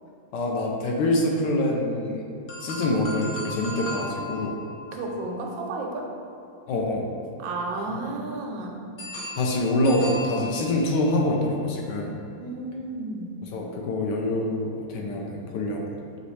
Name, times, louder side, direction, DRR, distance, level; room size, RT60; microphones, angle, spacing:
voice 1, 0.3-2.2 2.6-4.6 6.7-7.1 9.4-12.1 13.4-15.8, left 1 dB, 75° left, 0 dB, 1.2 m, -25 dB
sound 1, 2.5-6.6 9.0-11.3, left 1 dB, 60° left, 1.1 m, -38 dB
voice 2, 4.9-6.1 7.4-8.8 12.4-13.3, right 2 dB, 90° right, 0 dB, 1.4 m, -32 dB
5.2 x 3.0 x 3.1 m, 2.5 s
omnidirectional pair, 2.0 m